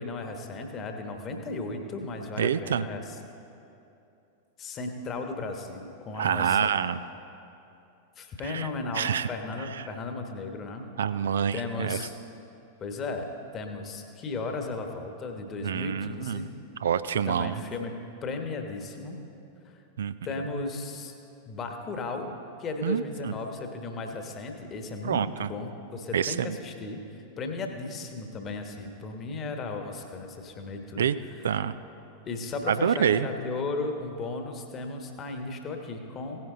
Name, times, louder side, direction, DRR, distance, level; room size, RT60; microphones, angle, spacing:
voice 1, 0.0-3.2 4.6-6.7 8.2-10.9 11.5-12.1 12.8-13.3 13.5-16.5 17.2-17.9 18.2-19.2 19.6-19.8 20.2-21.1 21.5-22.3 22.6-27.0 27.4-31.1 31.4-31.5 32.2-36.5, left 3 dB, 30° left, 4 dB, 1.3 m, -35 dB
voice 2, 2.4-2.9 6.2-7.0 8.4-8.7 8.9-9.3 11.0-12.1 15.6-16.4 16.8-17.6 20.0-20.1 22.8-23.3 25.0-25.5 26.1-26.6 31.0-31.1 31.4-31.7 32.7-33.3, right 8 dB, 65° right, 13 dB, 0.3 m, -27 dB
16.5 x 10.5 x 3.8 m, 2.8 s
figure-of-eight pair, 90°, 0 cm